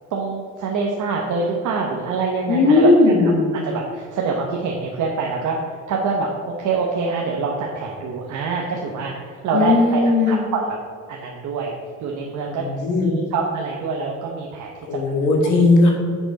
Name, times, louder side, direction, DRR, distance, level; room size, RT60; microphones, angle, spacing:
voice 1, 0.1-2.9 3.2-3.3 3.6-5.6 5.9-10.8 11.1-11.7 12.0-12.7 13.0-14.7, right 4 dB, 80° right, -1 dB, 1.1 m, -25 dB
voice 2, 2.5-3.5 9.5-10.4 12.4-13.2 14.8-15.9, left 3 dB, 80° left, 1 dB, 1.9 m, -17 dB
10.5 x 6.1 x 4.1 m, 2.2 s
cardioid pair, 90°, 30 cm